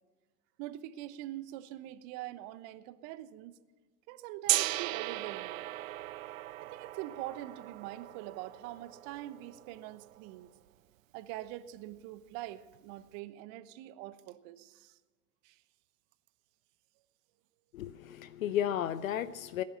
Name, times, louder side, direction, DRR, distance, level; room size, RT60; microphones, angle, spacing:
voice 1, 0.6-3.6 4.1-5.7 6.6-10.5 11.1-15.0 15.4-15.6, right 14 dB, 40° right, 14 dB, 1.0 m, -44 dB
Gong, 4.5-10.4, right 15 dB, 60° right, 0.5 m, -37 dB
voice 2, 17.7-19.6, left 10 dB, 60° left, 16 dB, 0.7 m, -33 dB
19.0 x 10.5 x 5.7 m, 1.3 s
figure-of-eight pair, 90°, 46 cm